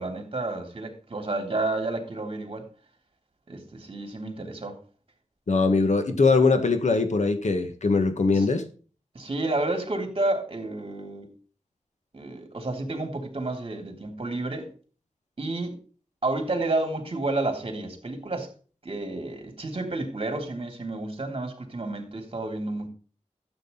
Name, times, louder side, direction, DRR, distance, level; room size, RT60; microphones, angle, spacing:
voice 1, 0.0-2.6 3.5-4.7 8.3-8.4 9.1-11.3 12.1-14.7 15.4-15.8 16.2-18.5 18.8-22.9, right 2 dB, 45° right, 3.2 m, -30 dB
voice 2, 5.5-8.6, left 4 dB, 75° left, 1.6 m, -21 dB
13.0 x 8.0 x 4.0 m
wide cardioid pair, 80°, 12 cm